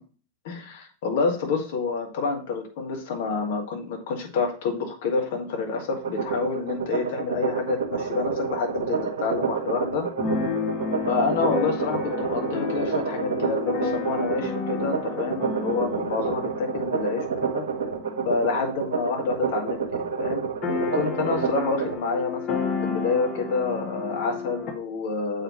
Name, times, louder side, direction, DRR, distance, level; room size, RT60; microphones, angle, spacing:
voice 1, 0.4-10.1 11.1-17.6 18.2-20.4 20.9-25.4, left 4 dB, 55° left, 2 dB, 1.6 m, -28 dB
sound 1, 5.9-21.9, right 6 dB, 60° right, 1.0 m, -29 dB
Keyboard (musical), 10.2-19.7 20.0-20.1 20.3-24.7, left 4 dB, 35° left, 1.3 m, -32 dB
7.2 x 4.9 x 3.1 m, 0.39 s
figure-of-eight pair, 90°, 0 cm